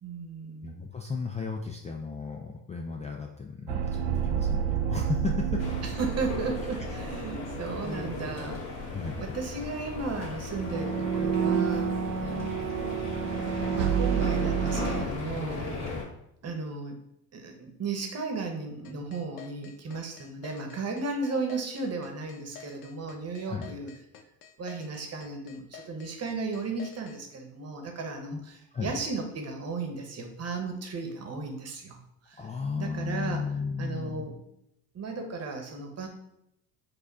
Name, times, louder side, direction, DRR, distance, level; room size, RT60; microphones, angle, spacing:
voice 1, 0.0-0.8 5.8-8.6 9.2-11.9 12.2-13.0 13.7-15.6 16.4-17.0 17.3-23.9 24.6-32.0 32.3-32.4 32.8-33.4 33.8-34.3 34.9-36.1, right 3 dB, 35° right, 3 dB, 1.1 m, -35 dB
voice 2, 0.6-5.6 8.9-9.2 15.8-16.0 23.5-23.7 28.3-28.4 28.7-29.0 32.4-34.3, left 5 dB, 15° left, 1 dB, 0.4 m, -34 dB
sound 1, 3.7-8.5 8.8-9.0 10.5-15.1, right 8 dB, 65° right, 0.7 m, -30 dB
sound 2, 5.6-16.0, left 3 dB, 35° left, 1.9 m, -36 dB
sound 3, 18.8-27.2, left 8 dB, 60° left, 0.8 m, -49 dB
4.6 x 2.4 x 4.7 m, 0.78 s
supercardioid pair, 95°, 44 cm